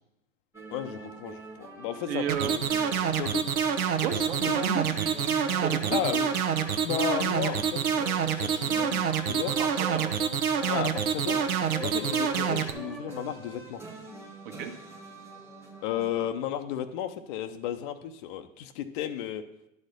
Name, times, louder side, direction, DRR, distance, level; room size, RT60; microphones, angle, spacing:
sound 1, 0.5-16.3, right 2 dB, 5° right, 1.2 m, -44 dB
voice 1, 0.7-2.7 3.0-3.4 4.4-4.6 5.9-6.3 6.8-7.8 8.4-9.6 10.7-11.4 11.8-13.8 15.8-19.4, left 10 dB, 40° left, 7 dB, 0.6 m, -33 dB
voice 2, 2.1-2.6 4.0-6.0 9.6-10.2 14.6-14.7, right 7 dB, 45° right, 5 dB, 1.4 m, -33 dB
sound 2, 2.3-12.7, right 7 dB, 85° right, 1.0 m, -26 dB
11.0 x 4.3 x 6.6 m, 0.88 s
hypercardioid pair, 120°, 41 cm